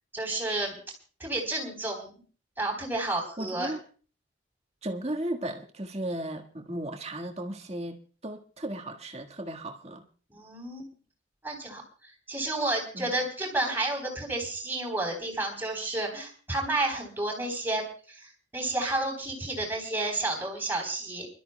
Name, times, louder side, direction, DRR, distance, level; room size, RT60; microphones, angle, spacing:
voice 1, 0.1-0.8 1.2-2.1 2.6-3.7 10.3-10.9 11.4-11.8 12.3-21.3, right 2 dB, 10° right, 3.8 m, -31 dB
voice 2, 3.4-3.8 4.8-8.0 8.2-10.0 12.9-13.1, right 1 dB, 30° right, 1.6 m, -35 dB
29.0 x 12.5 x 2.2 m
head